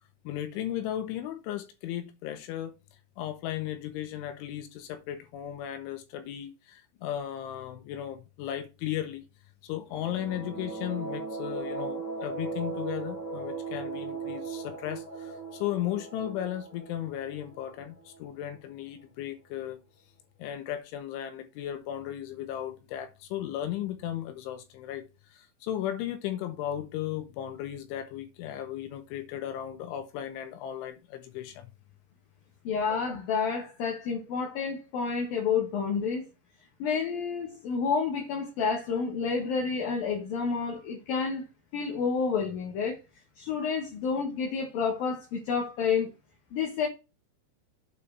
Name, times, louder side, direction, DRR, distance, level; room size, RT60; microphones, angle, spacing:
voice 1, 0.3-2.7 3.2-9.2 9.6-19.8 20.4-31.7, left 11 dB, 80° left, 3.7 m, -36 dB
sound 1, 9.9-18.5, right 4 dB, 35° left, 3.1 m, -38 dB
voice 2, 32.6-36.3 36.8-41.4 41.7-43.0 43.4-46.1 46.5-46.9, left 5 dB, 60° left, 2.8 m, -29 dB
8.3 x 4.6 x 4.7 m
omnidirectional pair, 5.5 m